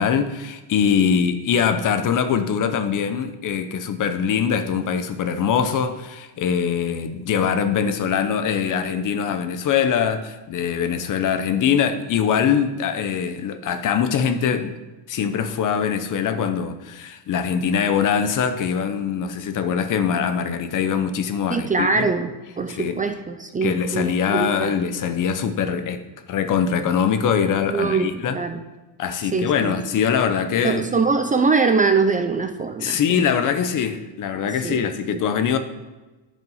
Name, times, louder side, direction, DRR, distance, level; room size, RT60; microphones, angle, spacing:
voice 1, 0.0-14.8 15.1-22.1 22.7-23.0 23.6-26.0 26.3-28.4 29.0-30.9 32.8-35.6, left 7 dB, 40° left, 9 dB, 0.8 m, -22 dB
voice 2, 21.5-22.3 22.6-24.7 27.7-28.6 29.3-29.7 30.6-33.0 34.6-34.9, right 4 dB, 20° right, 7 dB, 0.4 m, -22 dB
11.0 x 5.3 x 5.5 m, 1.2 s
cardioid pair, 160°, 46 cm